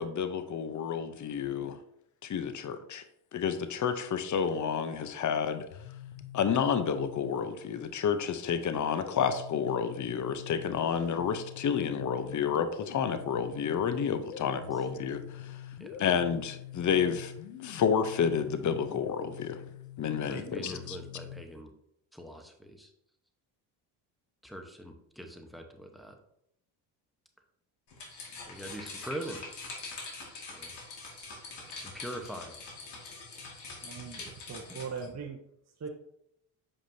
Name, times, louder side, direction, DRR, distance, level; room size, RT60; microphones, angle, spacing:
voice 1, 0.0-1.8 2.2-3.0 3.3-5.6 6.3-15.6 16.0-17.3 17.6-19.6 20.0-21.0, left 7 dB, 35° left, 0.8 m, -30 dB
sound 1, 5.6-7.7 8.7-21.6, left 10 dB, 85° left, 0.8 m, -45 dB
voice 2, 20.3-21.7 22.1-22.9 24.4-26.1 28.5-29.4 30.5-30.7 31.7-32.5 34.2-34.3, right 1 dB, ahead, 1.0 m, -42 dB
sound 2, 27.9-35.1, left 3 dB, 55° left, 2.2 m, -44 dB
voice 3, 33.8-35.4 35.8-35.9, right 6 dB, 35° right, 0.9 m, -40 dB
7.4 x 5.0 x 2.7 m
supercardioid pair, 75°, 49 cm